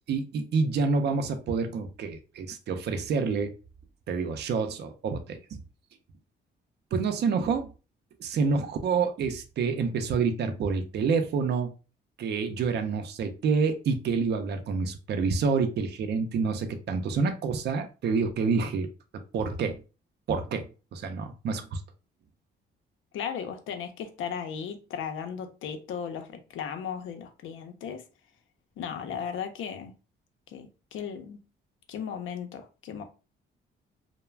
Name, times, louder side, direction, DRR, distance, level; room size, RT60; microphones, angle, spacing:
voice 1, 0.1-3.5 4.1-5.4 6.9-7.7 8.2-11.7 12.2-18.9 19.3-19.8 20.3-21.8, right 5 dB, 55° right, 0.5 m, -28 dB
voice 2, 23.1-28.0 28.8-29.9 30.5-31.4 31.9-33.0, left 7 dB, 80° left, 0.6 m, -36 dB
2.3 x 2.1 x 3.2 m
cardioid pair, 90°, 20 cm